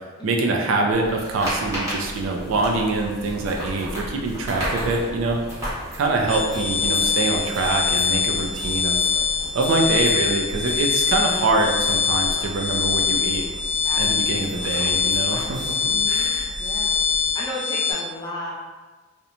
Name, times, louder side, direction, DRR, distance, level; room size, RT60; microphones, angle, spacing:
voice 1, 0.2-5.4 5.9-9.0 9.5-13.4 14.0-16.5, right 3 dB, 70° right, 2 dB, 0.4 m, -24 dB
sound 1, 0.9-17.3, equal, 15° right, 1.0 m, -35 dB
sound 2, 6.3-17.9, left 6 dB, 75° left, 0.8 m, -23 dB
voice 2, 14.3-14.7 15.9-16.3 16.6-17.0 17.3-18.5, left 1 dB, 20° left, -4 dB, 0.4 m, -34 dB
2.9 x 2.1 x 2.5 m, 1.3 s
head